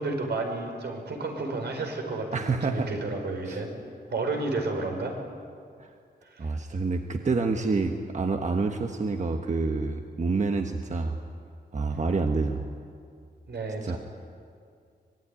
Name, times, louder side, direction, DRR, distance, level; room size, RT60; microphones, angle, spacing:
voice 1, 0.0-3.7 4.1-5.2 6.2-6.5 13.5-14.0, right 3 dB, 80° right, 3 dB, 5.1 m, -31 dB
voice 2, 2.3-2.9 3.4-3.6 5.8-5.9 6.4-11.2 11.7-12.6 13.8-14.0, right 3 dB, 45° right, 5 dB, 1.3 m, -28 dB
24.0 x 21.0 x 9.9 m, 2.3 s
wide cardioid pair, 130°, 17 cm